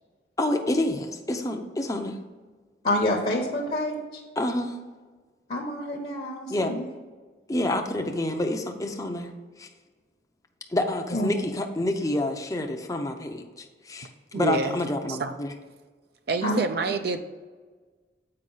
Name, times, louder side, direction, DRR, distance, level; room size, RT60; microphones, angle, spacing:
voice 1, 0.4-2.2 4.4-4.8 6.5-6.7 7.5-9.3 9.6-9.7 10.7-14.1 14.3-15.5, left 1 dB, 20° left, 4 dB, 0.6 m, -28 dB
voice 2, 2.8-4.2 5.5-6.9 11.1-11.3 16.4-16.6, left 1 dB, 40° left, -2 dB, 1.0 m, -27 dB
voice 3, 14.3-14.8 15.2-15.4 16.3-17.2, right 3 dB, 60° right, 8 dB, 0.5 m, -27 dB
7.6 x 5.2 x 4.0 m, 1.4 s
head